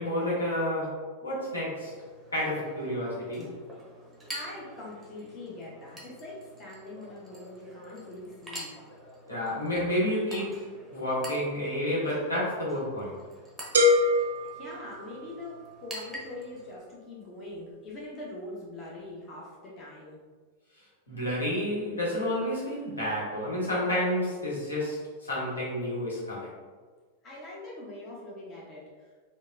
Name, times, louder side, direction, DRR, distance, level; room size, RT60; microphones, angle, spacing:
voice 1, 0.0-1.9 2.3-3.5 9.3-10.6 10.9-13.2 21.1-26.5, left 1 dB, 75° left, -6 dB, 1.0 m, -30 dB
Chink clink, 1.8-16.7, right 1 dB, 5° right, 0.8 m, -47 dB
voice 2, 4.3-8.7 14.5-20.2 27.2-29.2, left 2 dB, 30° left, -5 dB, 0.8 m, -43 dB
sound 1, 13.7-15.6, left 2 dB, 65° right, 0.4 m, -25 dB
3.8 x 2.1 x 2.5 m, 1.5 s
figure-of-eight pair, 90°, 0 cm